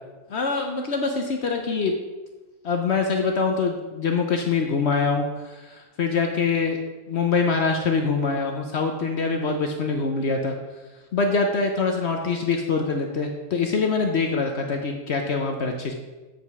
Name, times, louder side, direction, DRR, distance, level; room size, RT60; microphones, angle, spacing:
voice 1, 0.3-1.9 2.6-6.8 7.1-10.5 11.1-15.9, left 4 dB, 60° left, 3 dB, 1.0 m, -24 dB
8.2 x 5.1 x 6.0 m, 1.2 s
omnidirectional pair, 1.3 m